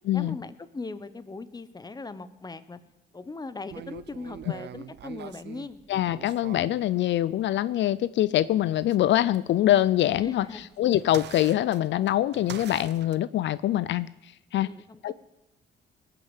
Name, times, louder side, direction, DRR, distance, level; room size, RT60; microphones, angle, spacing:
voice 1, 0.1-2.8 3.1-5.8 10.2-10.7 14.6-15.1, left 3 dB, 20° left, 13 dB, 1.0 m, -39 dB
sound 1, 3.7-6.8 8.5-13.2, right 10 dB, 60° right, 0.6 m, -44 dB
voice 2, 5.9-14.1 14.5-14.7 15.0-15.1, left 13 dB, 70° left, 17 dB, 0.4 m, -24 dB
19.5 x 6.7 x 8.2 m, 0.92 s
cardioid pair, 90°, 20 cm